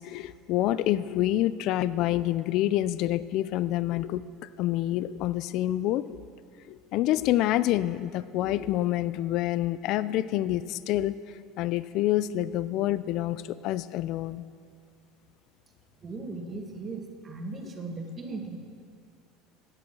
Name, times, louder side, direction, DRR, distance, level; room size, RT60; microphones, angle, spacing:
voice 1, 0.0-4.2 4.6-6.1 6.7-11.2 11.6-14.4, left 14 dB, 60° left, 17 dB, 0.4 m, -27 dB
voice 2, 16.0-18.6, right 3 dB, 30° right, 2 dB, 2.0 m, -37 dB
16.5 x 8.7 x 6.2 m, 2.2 s
supercardioid pair, 110°, 0 cm